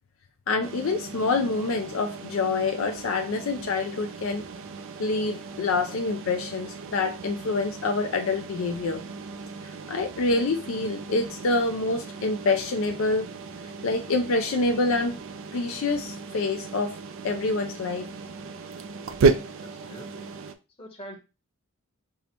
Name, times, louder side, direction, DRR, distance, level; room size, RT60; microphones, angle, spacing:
voice 1, 0.5-4.4 5.0-9.0 9.6-13.3 13.8-15.2 15.5-17.0 17.2-18.1, left 3 dB, 65° left, 0.4 m, -26 dB
sound 1, 0.6-20.5, right 4 dB, 60° right, 0.4 m, -34 dB
voice 2, 19.6-20.3 20.8-21.2, equal, 25° left, 0.9 m, -44 dB
5.5 x 2.1 x 2.8 m
head